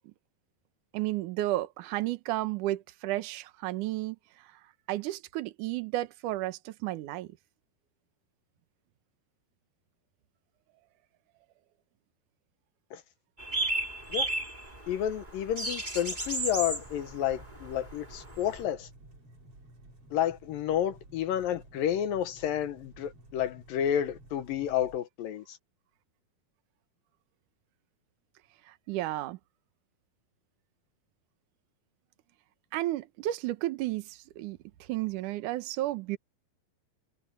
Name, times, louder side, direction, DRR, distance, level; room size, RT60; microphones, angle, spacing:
voice 1, 0.9-4.2 4.9-7.3 28.7-29.4 32.7-34.6 34.9-36.2, right 16 dB, 65° right, 2.2 m, -32 dB
sound 1, 13.4-18.6, right 2 dB, 10° right, 4.4 m, -34 dB
voice 2, 14.9-18.9 20.1-25.6, left 10 dB, 75° left, 2.5 m, -30 dB
sound 2, 16.4-25.0, right 1 dB, 35° right, 6.0 m, -54 dB
omnidirectional pair, 4.4 m